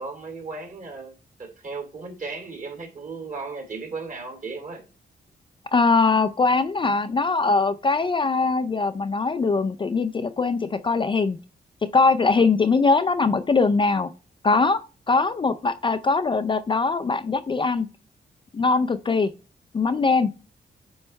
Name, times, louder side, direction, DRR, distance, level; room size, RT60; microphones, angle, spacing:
voice 1, 0.0-4.8, right 4 dB, 45° right, 2.5 m, -36 dB
voice 2, 5.7-11.4 11.9-14.1 14.4-14.8 15.1-17.9 18.5-19.3 19.7-20.3, left 4 dB, 30° left, 0.4 m, -21 dB
9.0 x 3.2 x 4.5 m
wide cardioid pair, 125°, 18 cm